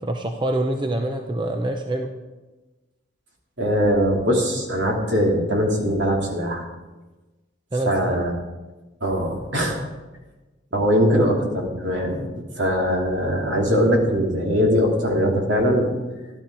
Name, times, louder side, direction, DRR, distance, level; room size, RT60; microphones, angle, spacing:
voice 1, 0.0-2.1 7.7-8.3 11.1-11.5, right 1 dB, 25° right, 4 dB, 0.7 m, -26 dB
voice 2, 3.6-6.6 7.9-8.3 9.0-9.8 10.7-12.3 12.6-15.9, equal, 65° right, 0 dB, 2.8 m, -21 dB
13.5 x 12.0 x 4.8 m, 1.2 s
head